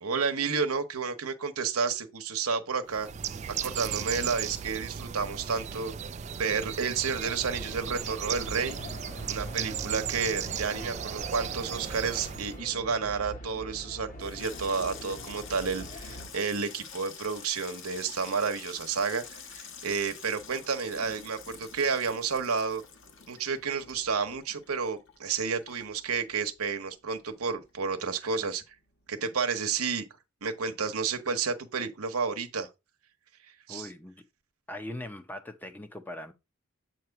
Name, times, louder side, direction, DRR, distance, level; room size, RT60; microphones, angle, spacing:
voice 1, 0.0-3.1 3.6-5.9 6.3-8.8 9.3-22.8 23.3-28.6 29.1-30.0 30.4-32.7 33.7-33.9, right 5 dB, 85° right, 1.0 m, -31 dB
Bird, 2.9-12.6, right 8 dB, 30° right, 0.3 m, -36 dB
sound 1, 7.2-16.3, equal, 35° left, 1.1 m, -43 dB
Water tap faucet / Sink (filling or washing), 14.0-26.9 27.2-27.8 28.1-28.4, left 6 dB, 55° left, 1.3 m, -47 dB
voice 2, 33.7-34.2 34.7-36.3, left 1 dB, 10° left, 0.6 m, -40 dB
7.9 x 2.9 x 5.8 m
head